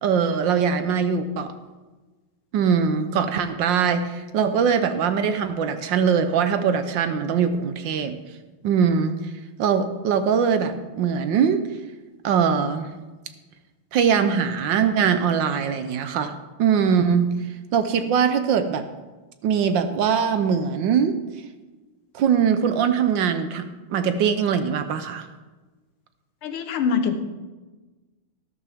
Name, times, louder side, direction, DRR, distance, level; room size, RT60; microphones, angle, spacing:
voice 1, 0.0-1.5 2.5-8.2 8.6-9.3 9.6-11.6 12.2-13.0 13.9-17.3 17.7-18.8 19.4-21.2 22.1-25.3, right 7 dB, 70° right, 9 dB, 1.3 m, -22 dB
voice 2, 26.4-27.2, left 6 dB, 85° left, 8 dB, 1.8 m, -24 dB
13.0 x 12.5 x 3.5 m, 1.2 s
omnidirectional pair, 2.3 m